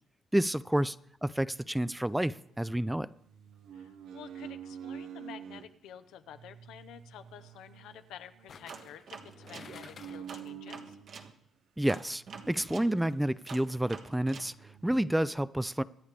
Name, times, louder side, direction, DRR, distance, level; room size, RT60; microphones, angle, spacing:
voice 1, 0.3-1.0 1.2-3.1 11.8-15.8, right 1 dB, 5° right, 16 dB, 0.4 m, -29 dB
sound 1, 1.5-2.8 3.3-5.7 6.3-11.3 12.2-13.4 13.7-13.8 14.1-15.1, right 8 dB, 85° right, 0.9 m, -48 dB
voice 2, 3.7-11.0, left 10 dB, 85° left, 10 dB, 0.7 m, -50 dB
sound 2, 5.9-6.1 8.5-10.4 10.8-10.9, left 7 dB, 50° left, 0.4 m, -52 dB
sound 3, 8.7-11.3 11.9-14.5, right 5 dB, 60° right, 1.3 m, -47 dB
23.5 x 9.7 x 3.4 m, 0.69 s
cardioid pair, 90°, 0 cm